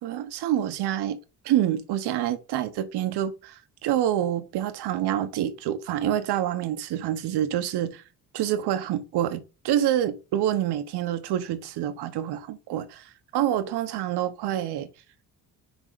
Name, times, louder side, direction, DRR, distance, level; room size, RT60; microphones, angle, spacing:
voice 1, 0.0-1.2 1.4-8.0 8.3-14.9, right 11 dB, 90° right, 1.0 m, -27 dB
6.1 x 3.6 x 5.1 m
cardioid pair, 125°, 39 cm